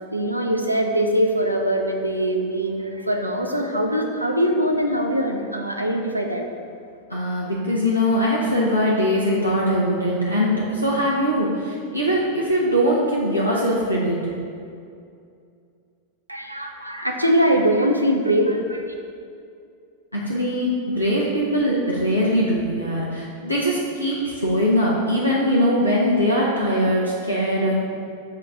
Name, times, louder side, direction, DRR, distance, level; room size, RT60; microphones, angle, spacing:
voice 1, 0.1-6.5 16.3-18.9, equal, 85° right, 2 dB, 0.4 m, -22 dB
voice 2, 7.1-14.2 20.1-27.7, equal, 90° left, -6 dB, 0.5 m, -21 dB
5.5 x 2.3 x 3.8 m, 2.4 s
figure-of-eight pair, 90°, 0 cm